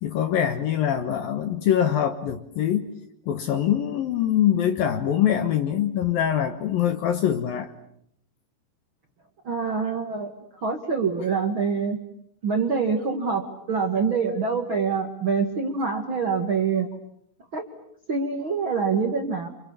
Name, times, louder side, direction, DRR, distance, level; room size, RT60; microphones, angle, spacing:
voice 1, 0.0-2.9 3.3-7.7, left 10 dB, 70° left, 2.4 m, -23 dB
voice 2, 9.4-12.0 12.4-16.9 17.5-17.7 18.1-19.5, right 5 dB, 55° right, 1.4 m, -25 dB
29.0 x 28.0 x 7.2 m
omnidirectional pair, 5.5 m